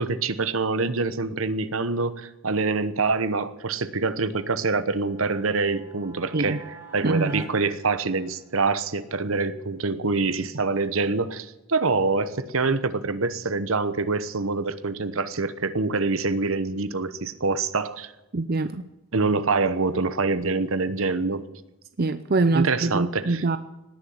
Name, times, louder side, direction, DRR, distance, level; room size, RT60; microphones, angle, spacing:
voice 1, 0.0-6.6 6.9-18.1 19.1-21.5 22.5-23.4, right 3 dB, 75° right, 13 dB, 1.0 m, -25 dB
sound 1, 4.3-8.6, right 1 dB, 10° right, 1.9 m, -47 dB
voice 2, 7.0-7.4 18.3-18.8 22.0-23.6, right 3 dB, 45° right, 11 dB, 0.6 m, -24 dB
19.0 x 7.1 x 9.5 m, 0.98 s
head